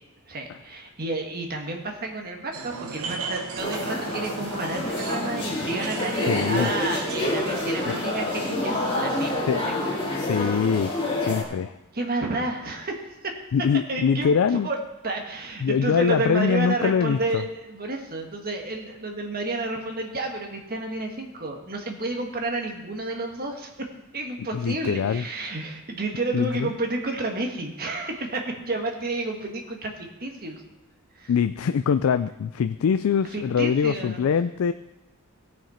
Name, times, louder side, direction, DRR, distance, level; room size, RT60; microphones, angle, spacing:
voice 1, 0.3-10.5 11.9-13.3 13.9-14.8 15.0-23.9 24.1-30.6 31.1-31.3 33.3-34.3, right 2 dB, 45° right, 2 dB, 1.5 m, -31 dB
sound 1, 2.5-9.4, right 4 dB, 80° right, 0.9 m, -37 dB
sound 2, 3.6-11.4, left 2 dB, 25° left, 2.5 m, -28 dB
voice 2, 6.2-6.7 9.5-9.7 10.2-11.0 11.2-11.7 13.5-14.7 15.6-17.4 24.5-25.2 26.3-26.7 31.3-34.7, left 6 dB, 70° left, 11 dB, 0.3 m, -23 dB
17.0 x 6.0 x 4.3 m, 1.0 s
head